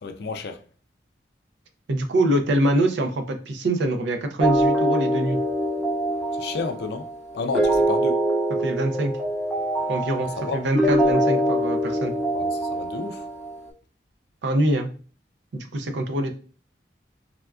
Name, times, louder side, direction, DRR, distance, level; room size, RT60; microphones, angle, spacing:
voice 1, 0.0-0.6 6.3-7.1 7.3-8.2 10.4-10.6 12.3-13.3, left 4 dB, 65° left, 0.3 m, -31 dB
voice 2, 1.9-5.4 8.6-9.1 9.9-12.1 14.4-14.9 15.5-16.3, right 1 dB, 85° right, 0.5 m, -24 dB
sound 1, 4.4-13.6, right 1 dB, ahead, 0.5 m, -24 dB
3.5 x 2.3 x 2.3 m
head